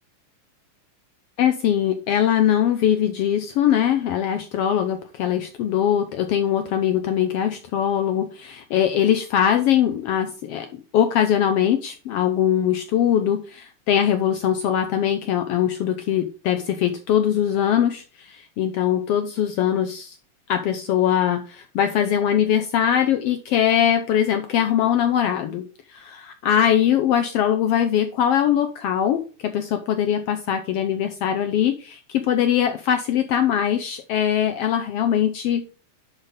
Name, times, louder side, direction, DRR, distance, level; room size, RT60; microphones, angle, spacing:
voice 1, 1.4-10.7 10.9-20.2 20.5-25.6 25.9-35.6, left 9 dB, 85° left, 7 dB, 1.3 m, -21 dB
11.0 x 4.1 x 5.1 m, 0.37 s
omnidirectional pair, 3.5 m